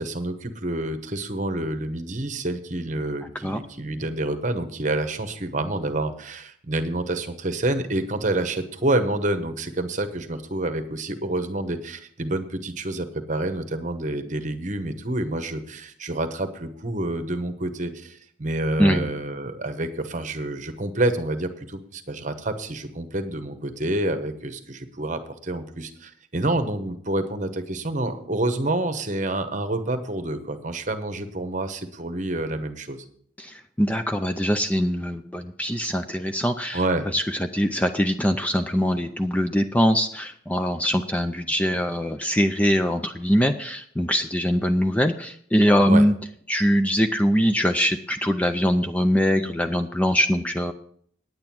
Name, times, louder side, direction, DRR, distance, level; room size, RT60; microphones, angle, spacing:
voice 1, 0.0-33.0 36.7-37.1 45.9-46.1, right 2 dB, 40° right, 9 dB, 1.0 m, -28 dB
voice 2, 18.8-19.1 33.4-36.8 37.1-46.1 46.5-50.7, equal, 5° left, 6 dB, 0.4 m, -22 dB
9.6 x 8.9 x 5.9 m, 0.62 s
head